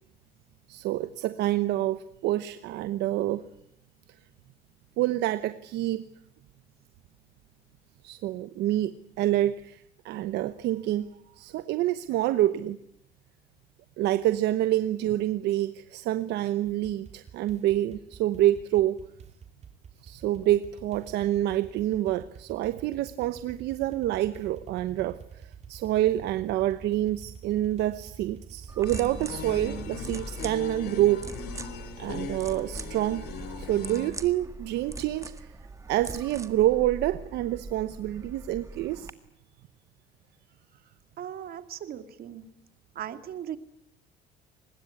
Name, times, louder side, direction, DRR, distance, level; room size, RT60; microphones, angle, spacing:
voice 1, 0.7-3.4 5.0-6.0 8.0-11.1 11.4-12.8 14.0-19.0 20.0-31.3 32.0-33.2 33.6-35.5 35.9-39.1, right 14 dB, 80° right, 12 dB, 1.0 m, -27 dB
sound 1, 16.6-30.0, right 6 dB, 40° right, 2.7 m, -48 dB
sound 2, 28.7-39.1, right 3 dB, 20° right, 1.7 m, -42 dB
sound 3, 28.8-34.1, left 4 dB, 70° left, 4.3 m, -38 dB
voice 2, 41.2-42.5 43.0-43.6, right 10 dB, 60° right, 9 dB, 2.4 m, -38 dB
24.0 x 21.0 x 9.9 m, 0.74 s
cardioid pair, 110°, 17 cm